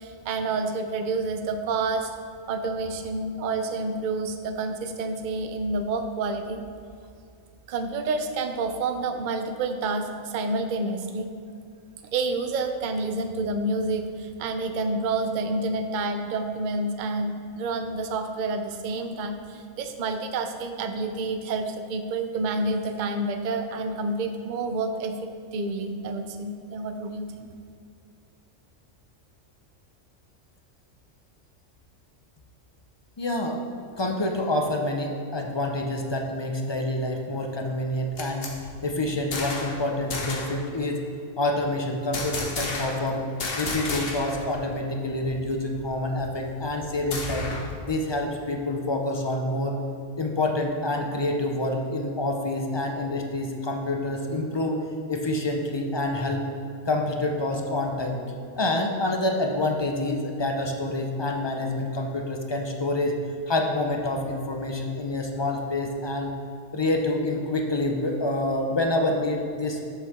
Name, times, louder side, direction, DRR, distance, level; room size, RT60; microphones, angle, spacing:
voice 1, 0.0-2.1 2.5-6.6 7.7-11.3 12.1-27.5, right 3 dB, 55° right, 7 dB, 0.6 m, -29 dB
voice 2, 33.2-33.6 34.0-38.5 38.8-41.0 41.4-43.2 43.5-47.5 47.9-49.8 50.2-54.8 55.1-56.5 56.9-58.2 58.6-63.2 63.5-66.3 66.7-69.8, left 1 dB, 35° left, 2 dB, 0.4 m, -27 dB
sound 1, 37.9-39.8 40.1-40.6 42.1-43.1 43.4-44.5 44.7-44.8 45.2-47.8, left 3 dB, 50° left, 1.2 m, -33 dB
7.4 x 6.8 x 3.6 m, 2.4 s
omnidirectional pair, 1.3 m